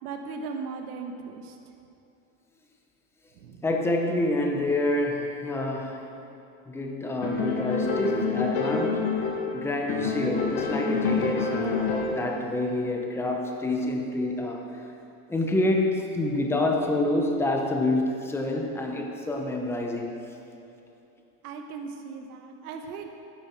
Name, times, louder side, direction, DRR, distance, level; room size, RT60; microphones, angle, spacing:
voice 1, 0.0-1.6 3.4-3.6 21.4-23.1, right 4 dB, 85° right, 4 dB, 1.1 m, -37 dB
voice 2, 3.6-6.1 6.7-14.8 15.3-20.1, left 2 dB, 5° left, 1 dB, 0.7 m, -27 dB
sound 1, 7.2-9.6 9.9-12.3, left 4 dB, 55° left, 1.8 m, -27 dB
12.5 x 9.5 x 4.5 m, 2.8 s
supercardioid pair, 160°, 44 cm